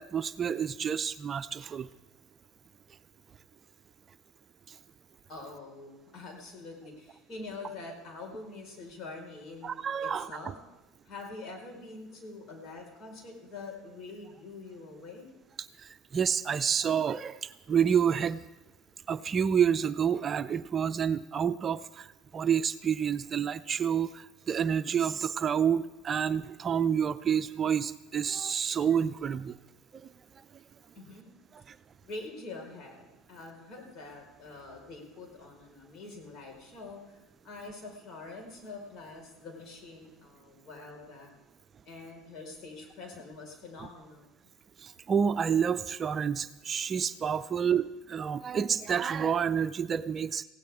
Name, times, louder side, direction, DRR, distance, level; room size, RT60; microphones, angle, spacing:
voice 1, 0.0-1.9 9.6-10.3 15.8-18.4 19.1-22.1 22.3-29.6 31.7-31.8 44.8-50.4, right 7 dB, 35° right, 12 dB, 0.5 m, -29 dB
voice 2, 5.3-10.6 11.1-15.3 30.9-31.3 32.0-41.3 41.8-44.3, left 3 dB, 55° left, 1 dB, 4.8 m, -45 dB
18.0 x 16.5 x 3.6 m, 1.1 s
hypercardioid pair, 85°, 0 cm